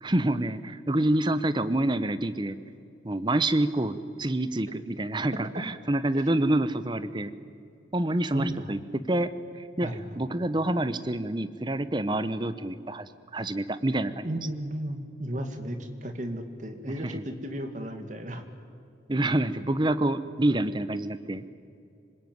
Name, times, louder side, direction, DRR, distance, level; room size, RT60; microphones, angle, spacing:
voice 1, 0.0-2.6 3.0-7.3 7.9-8.8 9.1-9.3 9.5-9.9 10.2-14.3 17.0-17.2 19.1-21.5, right 1 dB, 25° right, 12 dB, 0.8 m, -27 dB
voice 2, 8.3-8.7 9.8-10.2 14.2-18.4, equal, 40° right, 6 dB, 2.2 m, -34 dB
26.5 x 20.5 x 9.5 m, 2.5 s
head